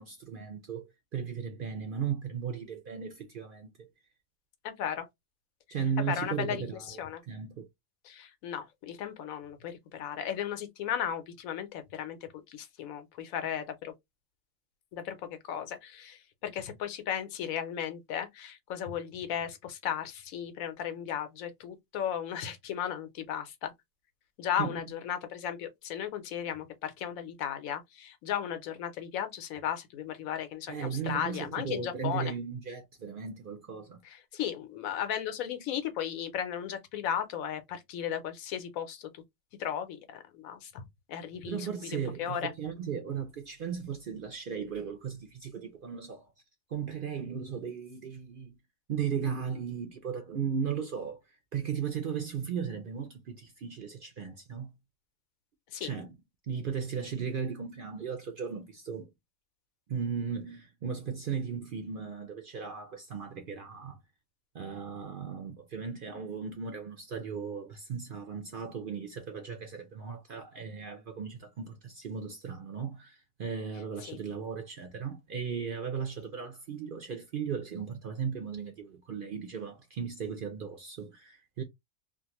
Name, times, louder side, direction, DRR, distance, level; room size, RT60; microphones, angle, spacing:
voice 1, 0.0-3.9 5.7-7.7 24.6-24.7 30.7-34.0 41.5-46.3 46.7-48.6 48.9-51.2 51.5-54.7 55.8-56.1 56.5-59.1 59.9-64.0 64.5-81.6, right 7 dB, 60° right, 0.5 m, -36 dB
voice 2, 4.6-5.1 6.0-7.2 8.0-13.9 14.9-23.7 24.4-32.3 34.0-39.2 39.6-42.5 55.7-55.9 74.1-74.2, left 9 dB, 85° left, 1.1 m, -35 dB
2.5 x 2.4 x 2.8 m
omnidirectional pair, 1.4 m